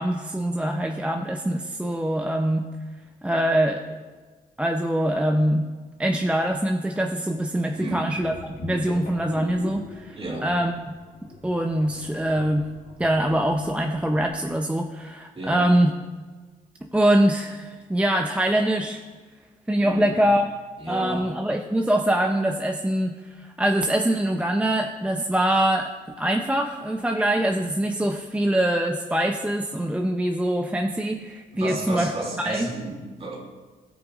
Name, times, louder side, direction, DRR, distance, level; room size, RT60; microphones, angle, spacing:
voice 1, 0.0-2.7 3.2-3.8 4.6-5.7 6.0-11.0 11.4-12.7 13.0-15.9 16.8-19.0 19.7-20.5 20.9-25.9 26.2-32.1 32.4-32.7, right 1 dB, 10° right, 3 dB, 0.5 m, -24 dB
voice 2, 7.7-8.1 10.2-10.5 15.3-15.6 19.8-20.2 20.8-21.3 31.5-33.4, right 2 dB, 40° right, -2 dB, 2.5 m, -32 dB
sound 1, 8.2-14.3, left 3 dB, 60° left, 1.9 m, -42 dB
17.0 x 5.9 x 2.5 m, 1.4 s
cardioid pair, 75°, 16 cm